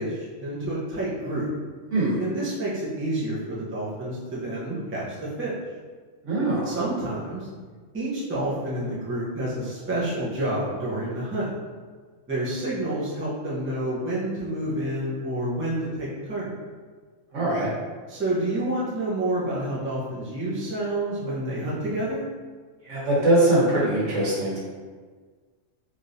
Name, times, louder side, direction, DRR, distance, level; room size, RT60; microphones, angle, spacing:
voice 1, 0.0-1.5 2.2-5.5 6.6-7.5 7.9-11.5 12.3-16.5 18.1-22.2, right 1 dB, 10° right, -8 dB, 0.6 m, -29 dB
voice 2, 1.9-2.2 6.2-6.8 17.3-17.7 22.9-24.6, right 1 dB, 70° right, -7 dB, 1.4 m, -22 dB
3.5 x 3.1 x 2.6 m, 1.5 s
omnidirectional pair, 1.3 m